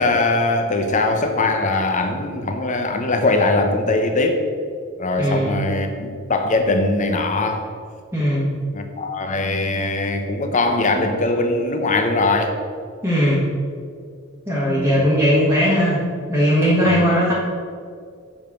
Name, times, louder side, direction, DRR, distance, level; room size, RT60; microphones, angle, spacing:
voice 1, 0.0-4.4 5.0-7.7 8.7-12.5 14.7-15.1 16.8-17.0, left 2 dB, 35° left, 5 dB, 0.9 m, -21 dB
voice 2, 5.2-5.6 8.1-8.5 13.0-13.5 14.5-16.0 16.3-17.3, equal, 10° right, -8 dB, 1.4 m, -18 dB
7.2 x 5.1 x 6.0 m, 2.2 s
head